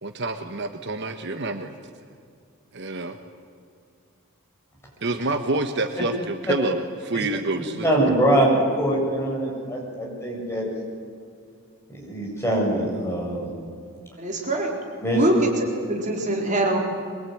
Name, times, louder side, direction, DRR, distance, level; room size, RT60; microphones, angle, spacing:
voice 1, 0.0-1.8 2.7-3.2 5.0-8.2, right 2 dB, 50° right, 7 dB, 1.3 m, -28 dB
voice 2, 7.8-10.7 11.9-13.5 15.0-15.2, right 1 dB, 10° left, -3 dB, 7.7 m, -23 dB
voice 3, 14.2-14.7 15.1-16.8, right 1 dB, 35° right, 0 dB, 4.1 m, -23 dB
23.5 x 23.0 x 9.4 m, 2.3 s
head